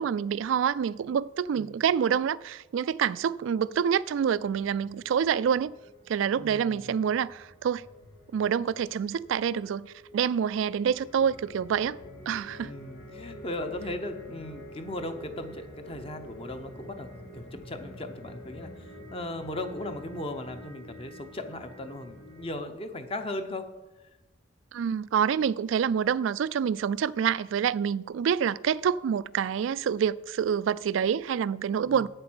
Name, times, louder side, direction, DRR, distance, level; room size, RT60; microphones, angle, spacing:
voice 1, 0.0-5.7 6.1-7.8 8.3-9.9 10.1-12.0 12.3-12.7 24.7-32.1, right 8 dB, 75° right, 0.3 m, -27 dB
sound 1, 4.3-22.5, left 1 dB, 85° left, 3.9 m, -47 dB
voice 2, 6.4-6.9 12.6-17.1 17.3-23.7 31.9-32.1, left 1 dB, 30° left, 0.7 m, -37 dB
8.5 x 7.7 x 6.2 m
head